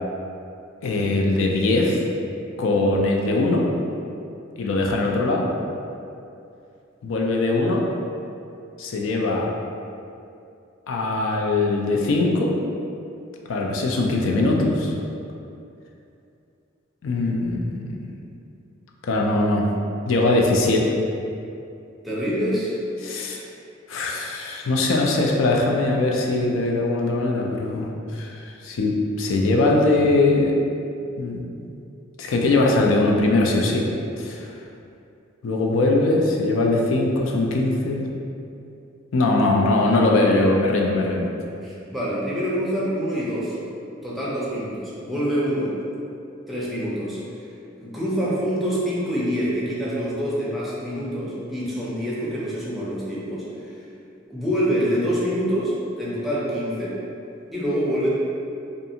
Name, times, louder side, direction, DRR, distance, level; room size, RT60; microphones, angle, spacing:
voice 1, 0.8-2.0 2.6-3.6 4.6-5.4 7.0-7.8 8.8-9.5 10.9-12.5 13.5-14.9 17.0-18.0 19.1-19.7 20.1-20.8 23.0-23.4 23.9-28.3 28.6-30.5 31.2-31.7 32.2-33.9 34.2-34.5 35.4-38.1 39.1-41.3, left 2 dB, 75° left, -1 dB, 0.4 m, -21 dB
voice 2, 22.0-22.7 41.6-43.6 44.0-45.7 46.5-47.2 47.8-53.4 54.3-57.0 57.5-58.1, equal, ahead, -8 dB, 0.5 m, -26 dB
2.5 x 2.4 x 2.7 m, 2.6 s
head